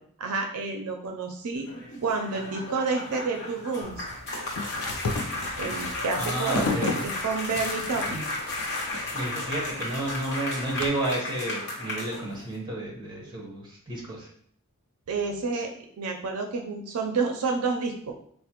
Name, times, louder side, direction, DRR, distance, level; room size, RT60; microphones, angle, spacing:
voice 1, 0.2-1.7 2.0-4.1 5.6-8.3 15.1-18.1, right 4 dB, 85° right, 3 dB, 0.5 m, -29 dB
sound 1, 1.5-12.5, left 2 dB, 55° left, 1.0 m, -34 dB
sound 2, 3.8-10.9, left 4 dB, 85° left, 0.4 m, -34 dB
voice 2, 6.2-7.0 9.1-14.3, right 1 dB, 20° right, -3 dB, 1.0 m, -31 dB
4.1 x 2.1 x 2.9 m, 0.62 s
head